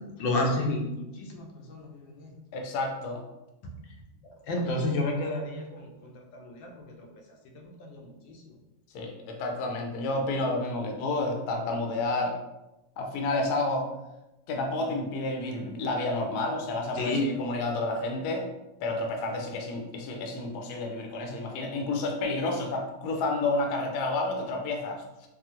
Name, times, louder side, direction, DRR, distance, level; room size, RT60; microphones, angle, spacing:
voice 1, 0.2-2.3 3.6-3.7 4.2-7.1 7.5-8.4 16.9-17.3, left 1 dB, 90° left, 1 dB, 1.3 m, -31 dB
voice 2, 2.5-3.2 8.9-12.4 13.0-13.9 14.5-18.5 18.8-25.3, left 2 dB, 70° left, 2 dB, 1.0 m, -30 dB
3.5 x 2.0 x 2.8 m, 0.98 s
omnidirectional pair, 2.0 m